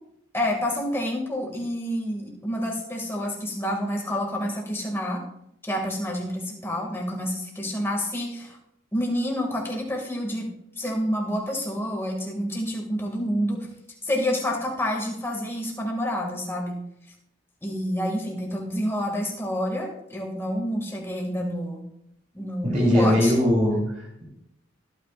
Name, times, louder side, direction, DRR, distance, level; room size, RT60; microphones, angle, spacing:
voice 1, 0.3-5.2 5.6-8.6 8.9-10.5 10.8-13.7 14.0-16.8 17.6-21.9 22.3-23.4, equal, 10° left, -1 dB, 2.3 m, -28 dB
voice 2, 22.6-24.2, left 1 dB, 40° right, -4 dB, 3.6 m, -21 dB
22.5 x 9.2 x 2.6 m, 0.78 s
head